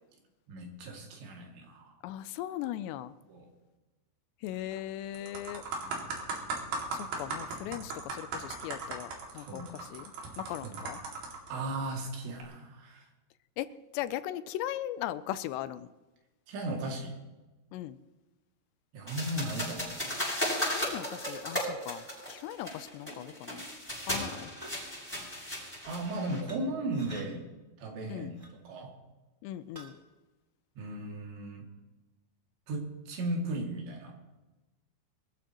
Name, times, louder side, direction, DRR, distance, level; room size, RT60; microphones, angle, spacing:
voice 1, 0.5-2.0 3.3-3.5 5.8-6.1 9.4-9.7 10.6-10.8 11.5-13.1 16.5-17.2 18.9-19.9 25.6-27.4 27.8-28.9 30.8-31.7 32.7-34.2, right 1 dB, 80° right, 0 dB, 4.6 m, -36 dB
voice 2, 2.0-3.1 4.4-5.6 6.9-11.0 13.6-13.7 13.9-15.9 17.7-18.0 20.6-23.6 24.1-24.5 28.1-28.3 29.4-29.9, left 13 dB, 85° left, 14 dB, 2.7 m, -38 dB
sound 1, 4.5-4.8 5.1-11.5 12.2-12.4, right 3 dB, 65° right, 4.0 m, -38 dB
sound 2, 19.1-26.4, left 1 dB, 5° left, 6.4 m, -35 dB
sound 3, 24.6-24.9 26.3-26.6 26.9-27.2 28.3-28.5 29.7-29.9, right 1 dB, 15° right, 1.3 m, -47 dB
23.5 x 14.0 x 3.0 m, 1.1 s
omnidirectional pair, 5.1 m